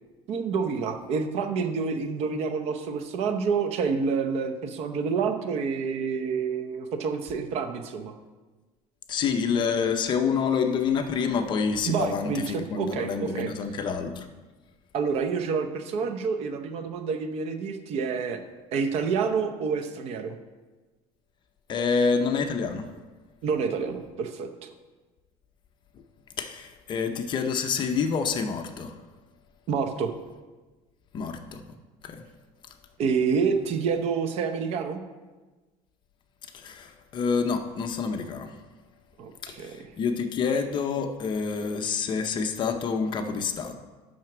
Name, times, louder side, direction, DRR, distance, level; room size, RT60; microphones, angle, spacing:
voice 1, 0.3-8.1 11.8-13.5 14.9-18.4 18.7-20.4 23.4-24.7 29.7-30.1 33.0-35.0 39.2-39.8, right 5 dB, 50° right, 7 dB, 0.8 m, -28 dB
voice 2, 9.1-14.3 21.7-22.9 26.4-28.9 31.1-31.6 32.0-32.3 36.5-38.5 39.4-43.7, left 5 dB, 35° left, 6 dB, 0.7 m, -27 dB
7.6 x 5.8 x 6.0 m, 1.3 s
cardioid pair, 155°, 13 cm